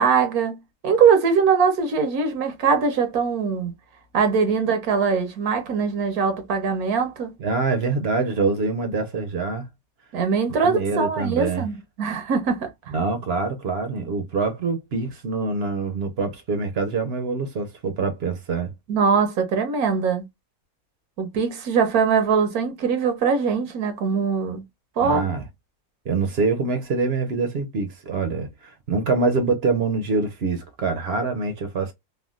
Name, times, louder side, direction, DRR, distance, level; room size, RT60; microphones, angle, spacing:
voice 1, 0.0-3.7 4.1-7.3 10.1-12.7 18.9-20.2 21.2-24.6 25.0-25.3, right 5 dB, 80° right, 1.4 m, -22 dB
voice 2, 7.4-9.7 10.6-11.6 12.9-18.7 25.0-25.4 26.0-31.9, right 4 dB, 55° right, 0.8 m, -25 dB
3.4 x 2.2 x 2.3 m
omnidirectional pair, 1.5 m